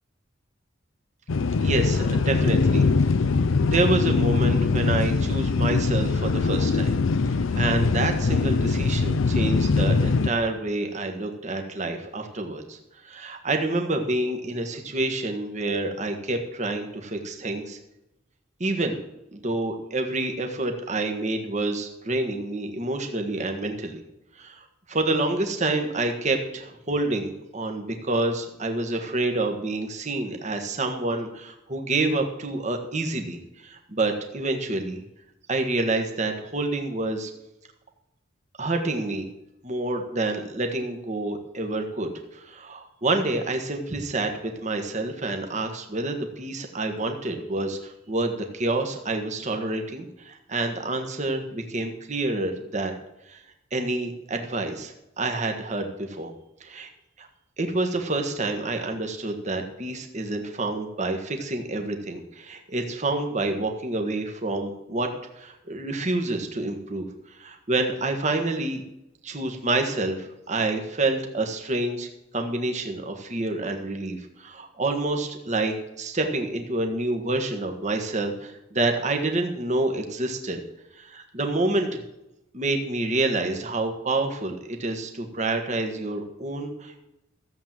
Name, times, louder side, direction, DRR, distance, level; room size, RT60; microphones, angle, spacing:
sound 1, 1.3-10.3, left 4 dB, 80° left, 0.5 m, -22 dB
voice 1, 1.6-2.8 3.6-7.0 7.2-17.8 18.6-19.0 19.3-24.0 24.4-35.0 35.5-37.3 38.6-39.2 39.6-52.9 53.3-53.4 53.7-56.3 56.6-56.9 57.2-57.3 57.6-65.1 65.3-68.8 69.2-72.1 72.3-80.6 81.3-82.0 82.5-87.0, right 2 dB, 35° right, 4 dB, 1.4 m, -28 dB
14.0 x 7.6 x 7.5 m, 0.89 s
head